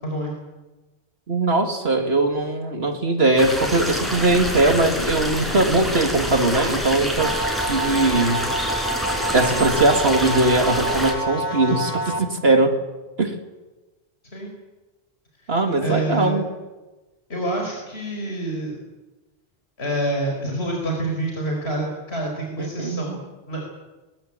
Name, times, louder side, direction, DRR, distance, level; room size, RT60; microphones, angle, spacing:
voice 1, 1.3-7.4 7.7-8.5 9.3-12.8 13.2-13.4 15.5-16.5 22.6-23.2, right 2 dB, 70° right, 5 dB, 2.6 m, -20 dB
sound 1, 3.4-11.1, equal, ahead, 5.6 m, -27 dB
sound 2, 7.2-12.2, right 2 dB, 40° left, 2.3 m, -27 dB
voice 2, 15.4-16.5 17.3-18.8 19.8-23.2 23.5-23.6, right 1 dB, 70° left, 0 dB, 5.1 m, -27 dB
22.5 x 21.5 x 9.0 m, 1.1 s
omnidirectional pair, 1.1 m